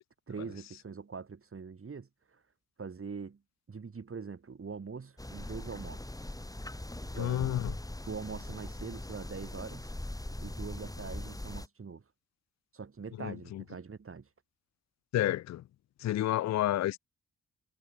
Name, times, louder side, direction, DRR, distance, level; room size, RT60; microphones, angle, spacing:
voice 1, 0.3-2.4 2.8-3.4 3.7-6.2 7.0-7.8 8.1-9.9 10.4-12.0 12.7-14.3, right 5 dB, 40° right, 3.4 m, -43 dB
sound 1, 5.2-11.7, left 1 dB, 10° left, 3.2 m, -41 dB
voice 2, 7.2-7.7 13.2-13.3 15.1-15.6 16.0-17.0, left 14 dB, 55° left, 0.5 m, -29 dB
cardioid pair, 65°, 32 cm